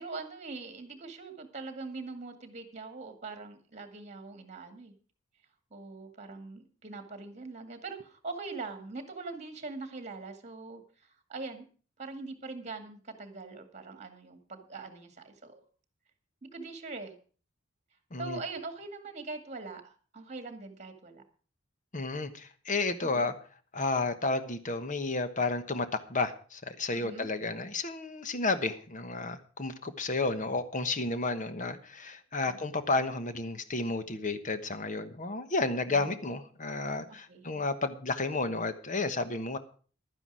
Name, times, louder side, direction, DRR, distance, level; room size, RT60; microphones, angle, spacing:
voice 1, 0.0-4.9 5.7-11.6 12.0-15.6 16.4-17.1 18.2-21.2 23.0-23.3 26.9-27.3 32.5-32.6 35.9-36.2 37.3-37.6, right 3 dB, 35° right, 8 dB, 2.1 m, -42 dB
voice 2, 21.9-23.3 23.7-39.6, left 3 dB, 40° left, 10 dB, 1.2 m, -32 dB
12.0 x 9.8 x 6.2 m, 0.41 s
head